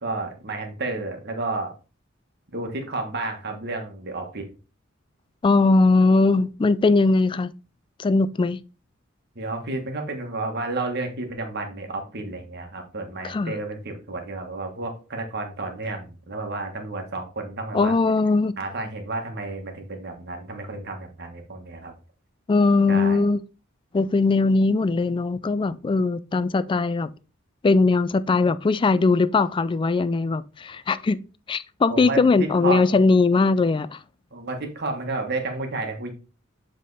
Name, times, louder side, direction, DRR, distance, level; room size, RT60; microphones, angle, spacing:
voice 1, 0.0-1.7 2.5-4.4 9.3-17.9 18.6-21.9 22.9-23.2 31.9-33.0 34.3-36.1, right 2 dB, 55° right, 1.5 m, -31 dB
voice 2, 5.4-7.5 8.0-8.6 13.2-13.5 17.7-18.5 22.5-23.4 23.9-27.1 27.6-31.2 31.5-34.0, left 3 dB, 25° left, 0.3 m, -20 dB
7.4 x 3.7 x 4.0 m
head